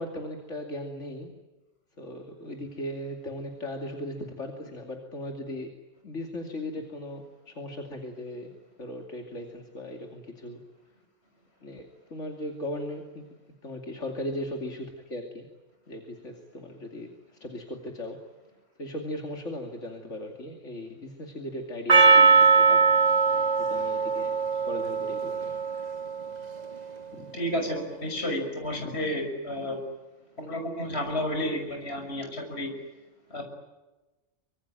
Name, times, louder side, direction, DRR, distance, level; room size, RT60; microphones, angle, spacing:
voice 1, 0.0-1.3 2.0-5.7 6.0-10.6 11.6-13.3 13.6-15.5 15.9-17.1 17.4-18.2 18.8-22.9 23.7-24.4 24.6-25.6 27.1-27.4 28.7-29.1, left 1 dB, 85° left, 2 dB, 3.0 m, -37 dB
Percussion, 21.9-26.4, right 5 dB, 35° right, 1.3 m, -21 dB
voice 2, 27.3-29.8 30.4-32.7 33.3-33.4, equal, 60° left, 4 dB, 6.7 m, -31 dB
25.0 x 24.5 x 9.2 m, 1.1 s
omnidirectional pair, 1.2 m